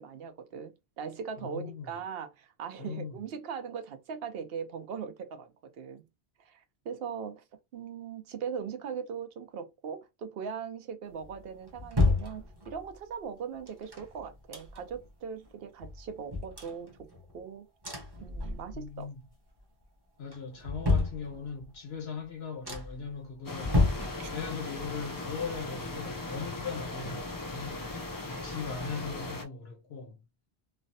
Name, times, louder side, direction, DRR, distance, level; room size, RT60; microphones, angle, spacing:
voice 1, 0.0-6.0 6.4-7.4 7.7-17.1 17.3-17.7 18.2-19.1 24.2-24.3, right 6 dB, 75° right, 0.8 m, -40 dB
voice 2, 1.4-1.9 2.8-3.1 18.7-19.2 20.2-23.8 24.3-27.9 28.4-30.2, left 5 dB, 80° left, 1.3 m, -39 dB
sound 1, 11.2-13.0 13.7-15.1 15.4-15.5 15.8-17.4 17.8-19.0 19.3-19.8 20.3-21.8 22.2-22.3 22.6-23.1 23.5-24.8 25.0-26.9 27.2-27.3, left 3 dB, 25° right, 0.8 m, -32 dB
sound 2, 23.4-29.4, left 2 dB, 35° left, 0.3 m, -38 dB
3.2 x 2.0 x 2.7 m
omnidirectional pair, 1.0 m